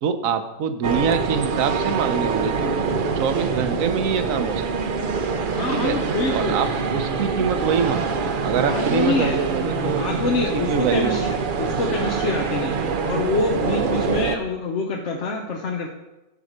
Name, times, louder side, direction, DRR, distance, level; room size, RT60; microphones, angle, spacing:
voice 1, 0.0-2.7 3.2-4.7 5.7-6.0 6.3-8.1 8.4-10.1 10.5-11.3, right 6 dB, 70° right, 9 dB, 1.2 m, -24 dB
sound 1, 0.8-14.4, right 5 dB, 50° right, 0.7 m, -25 dB
voice 2, 5.5-6.6 8.5-9.4 9.8-15.9, left 3 dB, 55° left, 2 dB, 1.1 m, -26 dB
12.5 x 4.7 x 6.5 m, 1.0 s
omnidirectional pair, 1.5 m